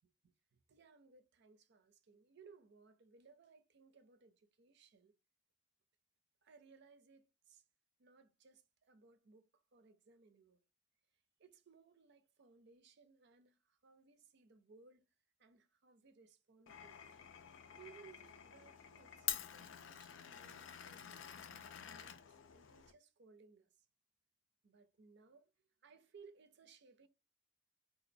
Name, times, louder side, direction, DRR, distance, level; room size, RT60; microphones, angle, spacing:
voice 1, 0.2-5.2 6.4-7.6 8.0-10.6 11.4-15.1 15.4-17.0 17.7-21.2 21.9-22.2 22.5-23.7 24.6-25.5 25.8-27.1, right 5 dB, 60° right, 0.5 m, -64 dB
Glass, 16.7-22.9, left 10 dB, 70° left, 0.5 m, -48 dB
3.9 x 2.4 x 2.6 m
head